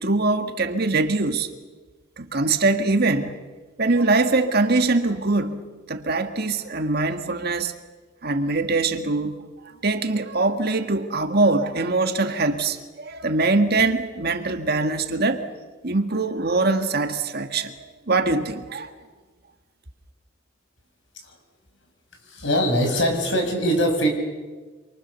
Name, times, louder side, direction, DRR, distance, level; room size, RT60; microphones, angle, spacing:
voice 1, 0.0-1.5 2.2-3.4 3.8-5.6 5.9-7.7 8.2-9.4 9.8-15.4 15.8-17.8 18.1-18.9, right 3 dB, 50° right, 1.8 m, -22 dB
voice 2, 22.2-24.1, equal, 65° left, 6.0 m, -22 dB
27.0 x 24.5 x 7.0 m
head